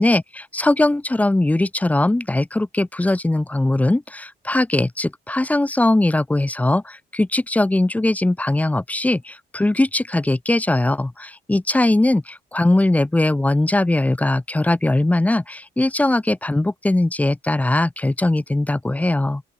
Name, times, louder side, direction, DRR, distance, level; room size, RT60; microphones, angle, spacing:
voice 1, 0.0-19.4, left 2 dB, 5° left, 0.4 m, -20 dB
open air
cardioid pair, 90°, 20 cm